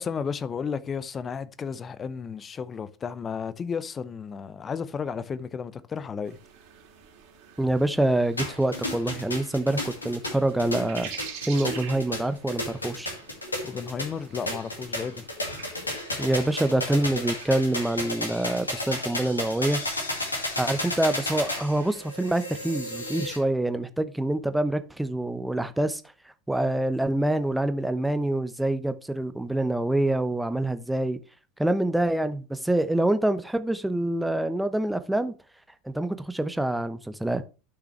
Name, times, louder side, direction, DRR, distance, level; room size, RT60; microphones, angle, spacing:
voice 1, 0.0-6.4 13.6-15.3, left 6 dB, 25° left, 0.7 m, -33 dB
sound 1, 6.2-22.1, right 7 dB, 50° right, 2.6 m, -47 dB
voice 2, 7.6-13.1 16.2-19.8 20.6-26.0 26.5-31.2 31.6-35.3 35.9-37.4, right 1 dB, 5° right, 0.9 m, -26 dB
sound 2, 8.4-23.4, left 1 dB, 85° left, 2.3 m, -33 dB
11.5 x 6.1 x 3.2 m
figure-of-eight pair, 75°, 0 cm